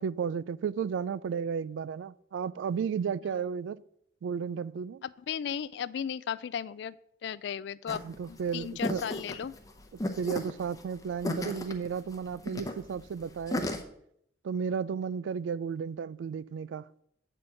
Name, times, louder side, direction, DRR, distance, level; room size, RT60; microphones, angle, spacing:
voice 1, 0.0-3.8 4.2-5.0 8.0-9.0 10.2-13.7 14.4-16.9, right 6 dB, 85° right, 0.3 m, -33 dB
voice 2, 5.0-7.0 7.2-8.0 8.3-9.5, left 8 dB, 65° left, 0.3 m, -35 dB
sound 1, 7.9-13.8, left 1 dB, 20° left, 0.7 m, -35 dB
8.4 x 4.4 x 6.3 m
head